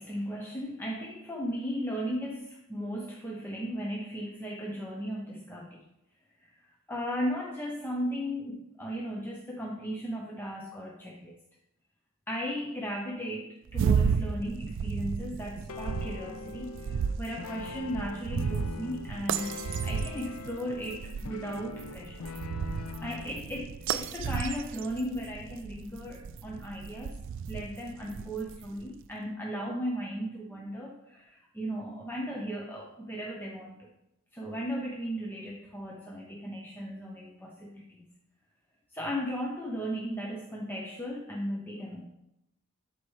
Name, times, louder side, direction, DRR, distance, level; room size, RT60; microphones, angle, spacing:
voice 1, 0.0-5.8 6.4-6.5 6.9-11.4 12.3-19.6 19.8-22.3 22.6-27.1 27.5-33.9 34.3-37.8 38.9-42.0, equal, 10° left, -2 dB, 0.6 m, -36 dB
sound 1, 13.7-28.8, right 6 dB, 60° right, 0.3 m, -33 dB
sound 2, 15.7-23.4, left 4 dB, 85° left, 0.5 m, -42 dB
11.5 x 4.2 x 3.2 m, 0.85 s
head